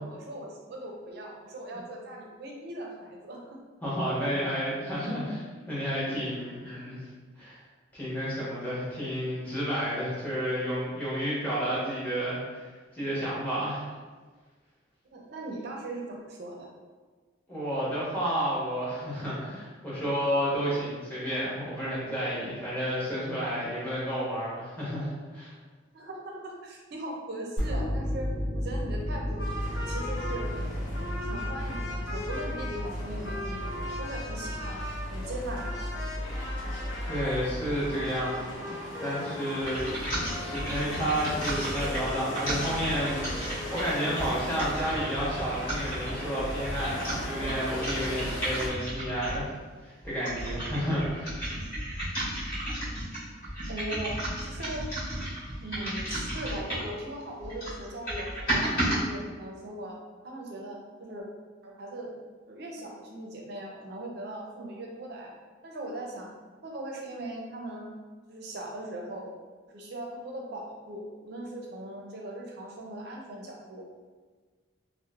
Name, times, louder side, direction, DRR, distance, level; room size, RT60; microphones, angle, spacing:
voice 1, 0.0-3.4 4.2-4.4 15.1-16.7 25.9-28.3 28.6-29.5 29.8-30.5 30.8-33.7 34.0-36.2 53.7-54.9 55.6-60.0 60.2-61.3 61.6-62.1 62.5-65.3 65.6-66.3 66.6-67.9 68.3-69.3 69.7-73.8, right 1 dB, 50° right, -1 dB, 0.4 m, -39 dB
voice 2, 3.8-7.0 7.4-7.6 7.9-13.8 17.5-25.5 37.1-39.9 40.4-49.5 49.8-51.4, equal, 10° left, -10 dB, 0.8 m, -31 dB
sound 1, 27.6-38.5, equal, 30° left, 1.1 m, -34 dB
sound 2, 29.4-48.7, left 1 dB, 70° left, 0.7 m, -38 dB
sound 3, 39.6-49.5 50.0-57.0 57.4-59.0, right 1 dB, 45° left, 1.3 m, -34 dB
3.0 x 2.0 x 2.3 m, 1.4 s
head